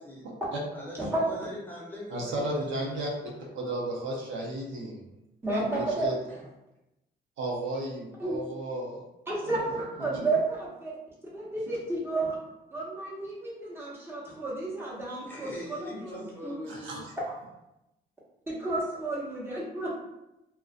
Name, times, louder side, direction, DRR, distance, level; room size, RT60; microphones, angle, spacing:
voice 1, 0.2-0.6 2.1-3.1 3.5-5.0 5.8-6.1 7.4-9.0 9.4-10.3 16.7-17.1, right 1 dB, 75° right, -2 dB, 0.7 m, -34 dB
voice 2, 0.7-3.7 6.3-6.4 15.3-17.0, left 1 dB, 10° left, -5 dB, 0.7 m, -42 dB
voice 3, 5.4-6.1 8.2-8.4 9.3-11.0 11.3-12.4 12.7-16.5 18.5-19.9, right 2 dB, 10° right, -6 dB, 1.0 m, -31 dB
2.4 x 2.2 x 2.4 m, 0.91 s
cardioid pair, 90°, 20 cm